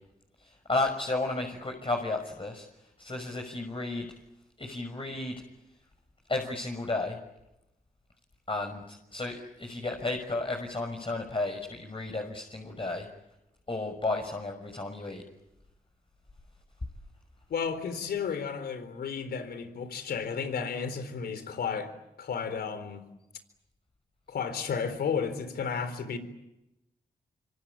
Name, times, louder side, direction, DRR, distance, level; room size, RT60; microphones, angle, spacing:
voice 1, 0.4-2.6 3.0-4.1 4.6-5.3 6.3-7.2 8.5-13.1 13.7-15.2, left 2 dB, 35° left, 3 dB, 6.3 m, -33 dB
voice 2, 17.5-21.9 22.2-23.0 24.3-26.2, left 6 dB, 80° left, 11 dB, 4.0 m, -33 dB
26.0 x 25.0 x 8.6 m, 0.91 s
supercardioid pair, 40°, 16 cm